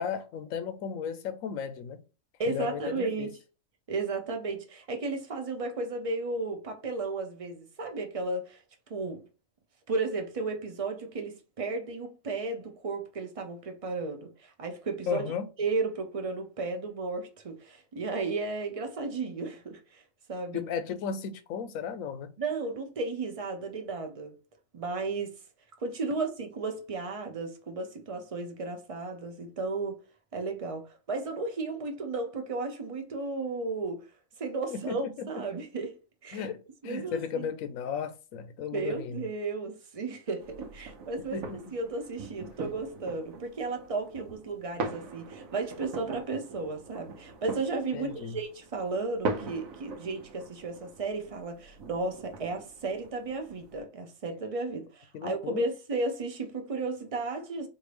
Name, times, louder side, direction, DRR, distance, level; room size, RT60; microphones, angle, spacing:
voice 1, 0.0-2.0 2.4-3.3 15.1-15.5 20.5-22.3 34.7-35.3 36.3-39.2 41.3-41.6 47.9-48.4 55.1-55.7, left 7 dB, 85° left, 1.0 m, -35 dB
voice 2, 2.4-3.3 3.9-8.6 8.9-9.2 9.9-15.3 15.6-20.0 20.3-20.6 22.4-24.3 24.7-25.4 25.8-30.0 30.3-34.1 34.4-35.9 36.2-36.5 36.8-37.5 38.7-57.7, right 3 dB, 35° right, 0.6 m, -34 dB
sound 1, 40.4-53.8, right 3 dB, 90° right, 1.0 m, -41 dB
4.5 x 2.6 x 3.3 m
omnidirectional pair, 1.4 m